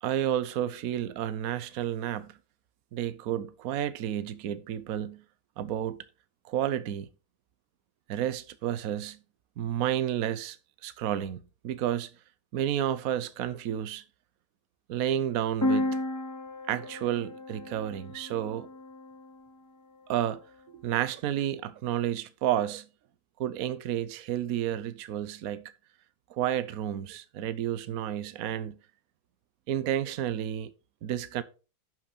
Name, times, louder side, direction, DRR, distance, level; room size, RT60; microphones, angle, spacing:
voice 1, 0.0-2.4 2.9-5.2 5.6-6.0 6.4-7.1 8.1-9.2 9.6-10.6 10.8-11.4 11.6-12.1 12.5-14.0 14.9-16.0 16.7-18.7 20.1-20.4 20.7-22.9 23.4-25.7 26.3-28.8 29.7-30.7 31.0-31.4, right 11 dB, 60° right, 1.1 m, -31 dB
sound 1, 15.6-19.4, left 1 dB, 15° left, 0.9 m, -33 dB
11.0 x 6.1 x 4.2 m
omnidirectional pair, 1.9 m